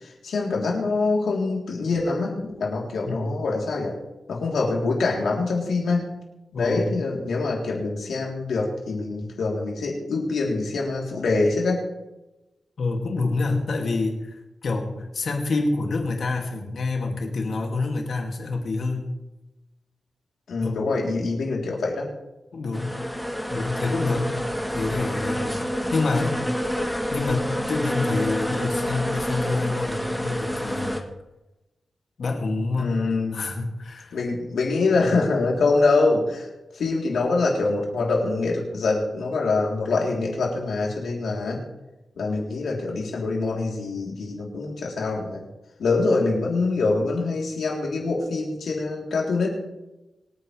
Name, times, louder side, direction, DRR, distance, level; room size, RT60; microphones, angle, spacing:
voice 1, 0.0-4.0 4.3-6.1 6.6-11.8 20.5-22.1 32.8-33.4 34.1-36.5 36.7-41.6 42.2-45.4 45.8-49.5, left 3 dB, 90° left, -2 dB, 3.5 m, -24 dB
voice 2, 3.1-3.4 6.5-6.9 12.8-19.1 20.6-21.0 22.5-23.1 23.5-24.5 24.7-26.5 27.1-31.0 32.2-33.0 33.3-34.2, left 3 dB, 60° left, 1 dB, 2.4 m, -27 dB
sound 1, 22.7-31.0, equal, ahead, 1.2 m, -28 dB
25.0 x 9.3 x 3.4 m, 1.0 s
wide cardioid pair, 155°, 0 cm